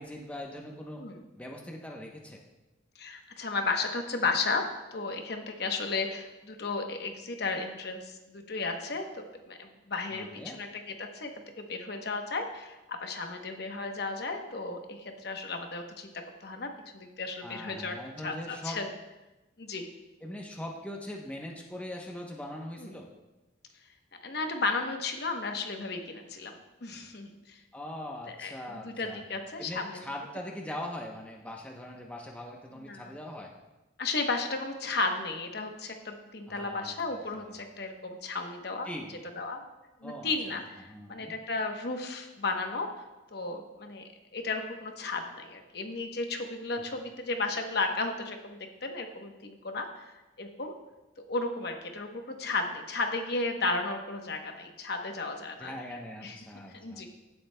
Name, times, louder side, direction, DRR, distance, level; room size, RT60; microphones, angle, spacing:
voice 1, 0.0-1.0 1.4-2.4 10.1-10.6 17.4-18.8 20.2-23.1 27.7-29.2 29.6-33.5 36.5-37.6 38.8-39.1 40.0-41.4 55.6-57.0, left 1 dB, 5° left, -1 dB, 0.8 m, -41 dB
voice 2, 3.0-4.6 4.9-16.1 16.4-18.0 18.2-18.9 19.6-19.9 22.8-23.0 24.2-27.6 28.4-30.0 32.8-33.1 34.0-38.9 39.4-39.6 40.0-42.9 43.3-44.0 44.3-50.0 50.4-50.7 51.3-55.7 56.2-56.4 56.7-57.1, left 3 dB, 55° left, 4 dB, 0.9 m, -34 dB
16.0 x 7.8 x 2.2 m, 1.0 s
head